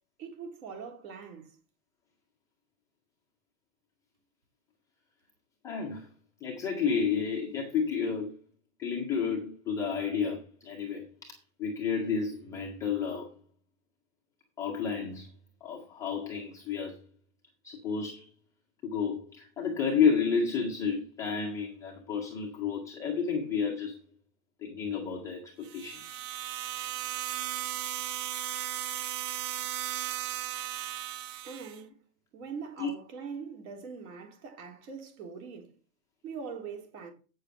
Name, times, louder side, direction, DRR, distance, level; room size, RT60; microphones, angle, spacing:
voice 1, 0.2-1.5 31.4-32.0 32.3-35.7 36.2-37.1, right 5 dB, 60° right, 3.8 m, -42 dB
voice 2, 5.6-6.1 6.4-8.4 8.8-11.1 11.6-13.3 14.6-15.3 15.6-17.0 17.6-18.3 18.8-24.0 24.6-26.2 28.7-28.8 32.8-32.9, left 6 dB, 5° left, 0.4 m, -31 dB
sound 1, 25.6-31.8, right 12 dB, 90° right, 1.4 m, -36 dB
8.3 x 6.6 x 5.6 m
hypercardioid pair, 155°, 47 cm